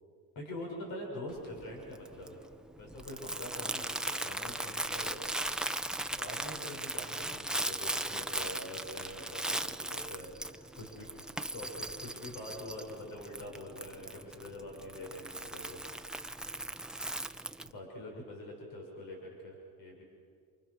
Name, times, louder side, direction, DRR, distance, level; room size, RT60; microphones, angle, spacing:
voice 1, 0.3-2.4 2.8-5.6 6.1-11.1 11.5-15.8 16.1-16.3 17.6-20.0, left 1 dB, 75° left, 0 dB, 6.6 m, -45 dB
Crumpling crinkling, 1.3-17.7, right 1 dB, ahead, 0.8 m, -38 dB
29.0 x 28.5 x 6.5 m, 2.2 s
cardioid pair, 110°, 34 cm